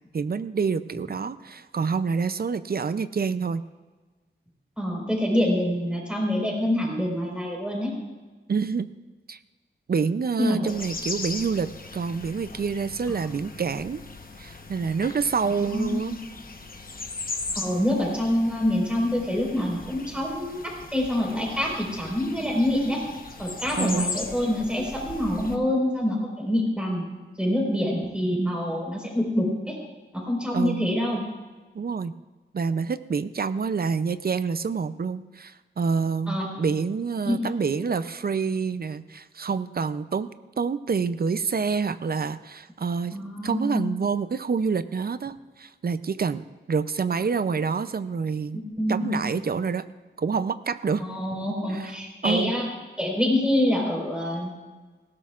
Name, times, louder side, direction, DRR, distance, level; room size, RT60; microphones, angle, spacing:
voice 1, 0.1-3.6 8.5-8.9 9.3-9.4 9.9-14.0 14.4-16.2 23.8-24.1 30.5-30.9 31.7-32.1 32.5-40.3 40.6-43.2 43.4-48.6 48.9-49.9 50.2-51.0 51.7-51.9 52.2-52.5, right 5 dB, 50° right, 13 dB, 0.5 m, -27 dB
voice 2, 4.8-7.9 10.4-10.7 13.1-13.2 15.5-16.2 17.5-20.6 20.9-23.0 23.4-27.0 27.4-29.8 30.1-31.2 36.3-36.5 37.2-37.4 43.1-43.8 48.8-49.2 51.0-52.7 53.0-54.5, left 1 dB, 5° right, -2 dB, 4.4 m, -26 dB
sound 1, 10.7-25.6, left 3 dB, 45° left, 1.0 m, -38 dB
18.5 x 16.5 x 2.4 m, 1.3 s
wide cardioid pair, 105°, 20 cm